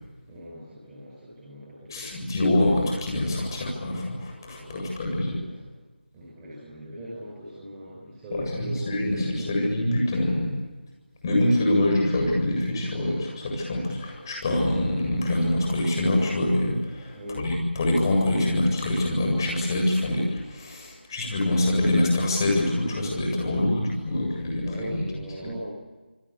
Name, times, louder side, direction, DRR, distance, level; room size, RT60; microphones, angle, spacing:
voice 1, 0.3-2.4 4.5-5.7 6.1-9.5 11.3-11.4 11.7-11.9 17.1-17.4 24.6-25.7, equal, 10° right, -9 dB, 6.5 m, -40 dB
voice 2, 1.9-5.4 8.5-10.5 11.2-25.0, left 1 dB, 20° left, 1 dB, 7.9 m, -25 dB
28.5 x 21.5 x 8.6 m, 1.2 s
figure-of-eight pair, 175°, 6 cm